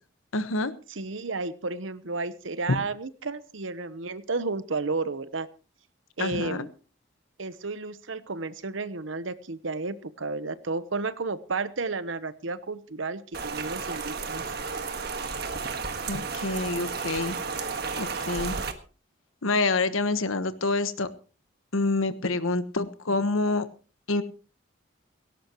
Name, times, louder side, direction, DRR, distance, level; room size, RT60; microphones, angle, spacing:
voice 1, 0.3-0.7 6.2-6.7 16.1-17.3 18.0-18.6 19.4-21.1 21.7-23.7 24.1-24.2, left 3 dB, 90° left, 12 dB, 1.3 m, -27 dB
voice 2, 0.9-5.5 6.2-6.7 7.4-14.4, right 3 dB, 75° right, 15 dB, 1.0 m, -32 dB
Rain, 13.3-18.7, right 4 dB, 50° right, 1.6 m, -32 dB
17.5 x 17.5 x 3.0 m, 0.35 s
head